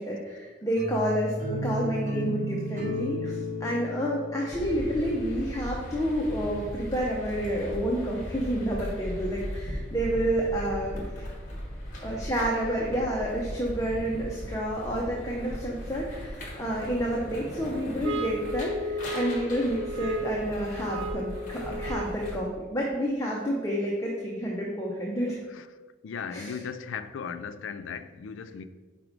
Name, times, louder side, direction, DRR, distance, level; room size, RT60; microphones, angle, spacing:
voice 1, 0.0-11.1 12.0-25.4 26.3-26.6, equal, 15° left, 0.6 m, -29 dB
sound 1, 0.8-5.7, left 1 dB, 40° right, 0.9 m, -34 dB
Waterloo south bank skaters, 4.5-22.4, equal, 40° left, 1.1 m, -38 dB
sound 2, 18.0-22.4, equal, 70° right, 0.5 m, -34 dB
voice 2, 26.0-28.6, left 6 dB, 80° left, 0.3 m, -37 dB
4.7 x 4.1 x 5.0 m
head